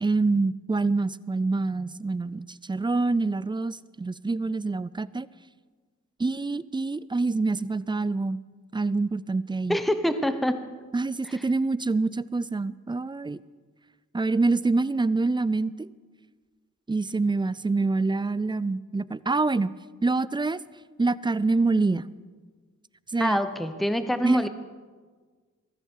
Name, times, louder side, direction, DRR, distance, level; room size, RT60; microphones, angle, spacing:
voice 1, 0.0-5.3 6.2-8.4 8.7-9.8 10.9-13.4 14.1-15.9 16.9-19.7 20.0-20.6 21.0-22.1 23.1-23.4 24.2-24.4, right 3 dB, 15° right, 18 dB, 0.4 m, -26 dB
voice 2, 9.7-10.6 11.3-11.4 23.2-24.5, equal, ahead, 9 dB, 0.9 m, -26 dB
14.5 x 14.0 x 4.7 m, 1.5 s
cardioid pair, 55°, 29 cm